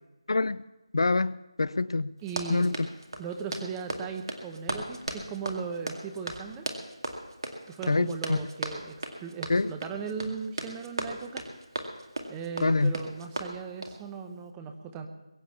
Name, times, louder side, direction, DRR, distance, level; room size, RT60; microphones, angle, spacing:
voice 1, 0.3-0.6 0.9-2.1 2.5-2.7 7.9-8.4 9.5-9.7 12.6-12.9, left 3 dB, 60° left, 20 dB, 0.4 m, -25 dB
voice 2, 2.2-2.7 3.2-6.7 7.7-11.5 12.3-15.1, right 6 dB, 10° right, 6 dB, 0.9 m, -37 dB
Run, 2.2-14.0, right 2 dB, 50° right, 2.2 m, -37 dB
22.0 x 8.4 x 7.0 m, 1.1 s
figure-of-eight pair, 165°, 3 cm